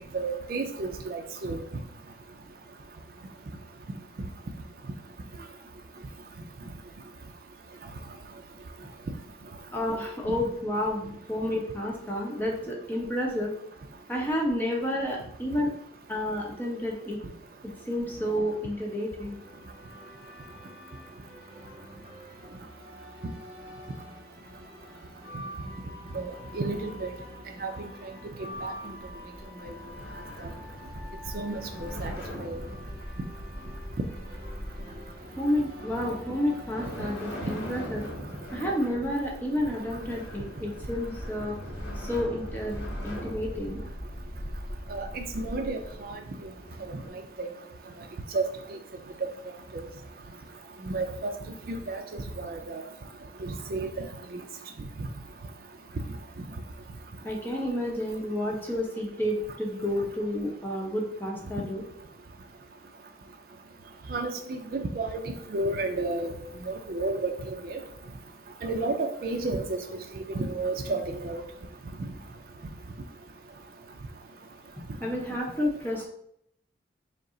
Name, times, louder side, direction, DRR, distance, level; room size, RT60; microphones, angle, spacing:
voice 1, 0.1-1.6 26.1-27.1 27.6-27.7 28.6-28.7 29.7-29.8 31.3-32.1 32.4-32.6 44.9-46.2 46.9-47.0 47.4-47.5 48.3-48.4 48.7-48.8 49.7-49.8 50.9-51.3 51.7-52.0 52.4-52.8 53.4-53.9 64.1-65.2 65.5-66.3 66.7-67.8 68.6-69.0 69.2-69.8 70.1-71.4, right 3 dB, 50° right, 5 dB, 0.4 m, -31 dB
voice 2, 9.7-13.5 14.1-15.7 16.1-17.2 17.6-19.4 35.4-38.1 38.5-41.6 42.0-43.9 57.2-61.8 75.0-76.1, left 1 dB, 10° left, -2 dB, 0.8 m, -30 dB
sound 1, 19.2-37.5, left 1 dB, 30° right, 1.1 m, -47 dB
sound 2, 28.7-47.1, equal, 90° left, 1.4 m, -40 dB
5.1 x 2.0 x 3.7 m, 0.71 s
head